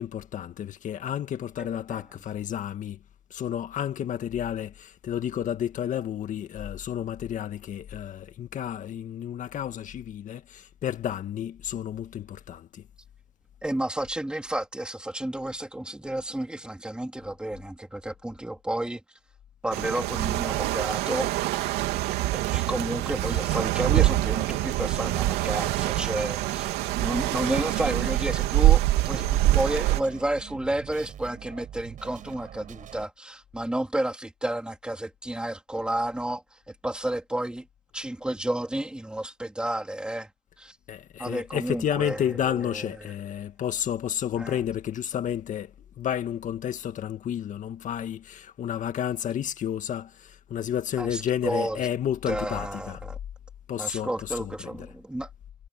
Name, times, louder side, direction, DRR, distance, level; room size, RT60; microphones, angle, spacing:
voice 1, 0.0-3.0 3.3-12.8 40.9-45.7 46.0-53.0 53.7-54.5, left 10 dB, 50° left, 1.8 m, -31 dB
voice 2, 1.6-2.0 13.6-19.0 19.6-21.3 22.3-37.7 37.9-40.3 40.6-40.8 41.2-42.9 44.4-44.6 51.0-51.8 52.3-53.2 53.8-55.3, right 1 dB, 5° right, 3.5 m, -31 dB
sound 1, 19.7-30.0, right 17 dB, 85° right, 3.0 m, -25 dB
sound 2, 21.7-33.1, right 10 dB, 55° right, 5.7 m, -44 dB
cardioid pair, 105°, 16 cm